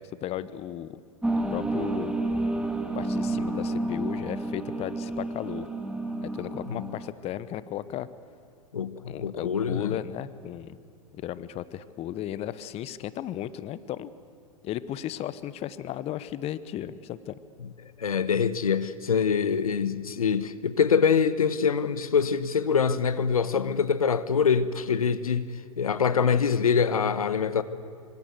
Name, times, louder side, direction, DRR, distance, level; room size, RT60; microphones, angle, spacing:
voice 1, 0.2-1.0 1.5-2.1 2.9-5.7 6.2-8.1 9.0-10.8 11.1-14.1 14.6-17.4, left 12 dB, 35° left, 1.1 m, -35 dB
sound 1, 1.2-7.1, right 2 dB, 5° right, 2.9 m, -30 dB
voice 2, 8.7-9.9 18.0-27.6, left 6 dB, 85° left, 1.2 m, -24 dB
25.5 x 25.0 x 8.0 m
hypercardioid pair, 100°, 18 cm